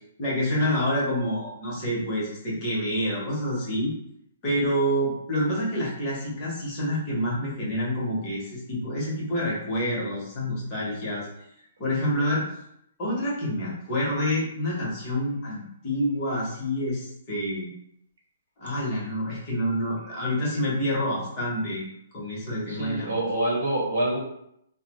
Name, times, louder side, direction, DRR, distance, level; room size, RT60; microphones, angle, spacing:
voice 1, 0.2-3.9 4.4-11.3 11.8-12.4 13.0-17.7 18.6-21.8 22.1-23.2, equal, 25° left, -5 dB, 0.9 m, -27 dB
voice 2, 22.7-24.2, right 1 dB, 75° right, -2 dB, 1.0 m, -26 dB
2.7 x 2.0 x 2.9 m, 0.75 s
hypercardioid pair, 165°, 0 cm